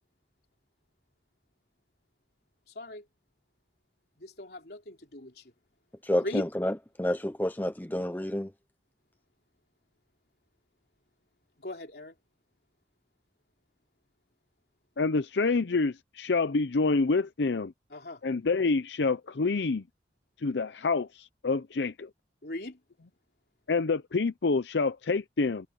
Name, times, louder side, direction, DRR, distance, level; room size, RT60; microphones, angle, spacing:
voice 1, 2.7-3.0 4.2-5.5 6.2-6.5 11.6-12.1 17.9-18.2 22.4-22.8, left 1 dB, 60° left, 3.5 m, -39 dB
voice 2, 6.0-6.7 7.0-8.5, left 1 dB, 10° left, 0.7 m, -29 dB
voice 3, 15.0-17.7 18.2-19.8 20.4-22.1 23.7-25.7, left 4 dB, 75° left, 0.6 m, -27 dB
head